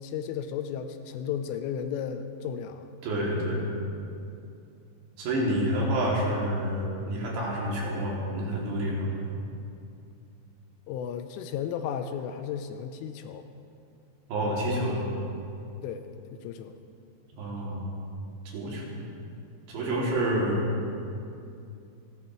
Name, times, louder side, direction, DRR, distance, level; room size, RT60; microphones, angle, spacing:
voice 1, 0.0-2.9 10.9-13.5 15.8-16.8, left 8 dB, 80° left, 8 dB, 3.1 m, -34 dB
voice 2, 3.0-3.7 5.2-9.1 14.3-15.0 17.3-17.9 18.5-19.1 19.7-20.6, right 1 dB, 65° right, -4 dB, 4.7 m, -28 dB
28.5 x 12.5 x 3.1 m, 2.5 s
omnidirectional pair, 5.8 m